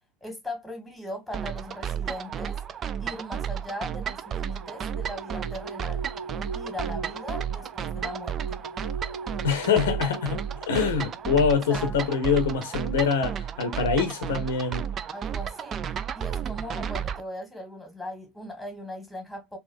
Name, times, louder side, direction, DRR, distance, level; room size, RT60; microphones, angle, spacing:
voice 1, 0.2-2.6 3.0-6.1 6.5-8.6 11.7-12.1 15.1-19.6, left 1 dB, ahead, 1.4 m, -39 dB
sound 1, 1.3-17.2, right 8 dB, 30° right, 0.3 m, -33 dB
sound 2, 4.0-11.8, right 3 dB, 85° right, 0.9 m, -41 dB
voice 2, 9.4-10.4 10.7-14.9, left 6 dB, 65° left, 0.7 m, -24 dB
3.9 x 2.3 x 2.5 m
figure-of-eight pair, 75°, 0 cm